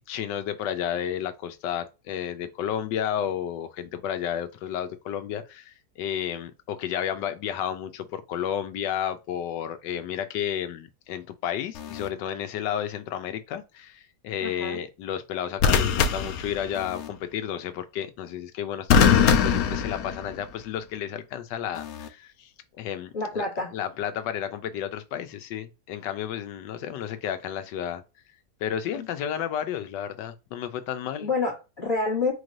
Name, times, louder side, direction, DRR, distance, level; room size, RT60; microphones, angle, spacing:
voice 1, 0.0-22.5 22.8-23.5 23.7-28.0 28.6-31.3, left 9 dB, 90° left, 1.3 m, -32 dB
sound 1, 11.7-12.1 15.6-17.1 18.9-20.6 21.8-22.1, left 7 dB, 70° left, 0.9 m, -22 dB
voice 2, 14.4-14.8 23.1-23.7 28.9-29.1 31.2-32.3, left 3 dB, 30° left, 1.5 m, -28 dB
4.4 x 3.2 x 2.5 m
omnidirectional pair, 1.9 m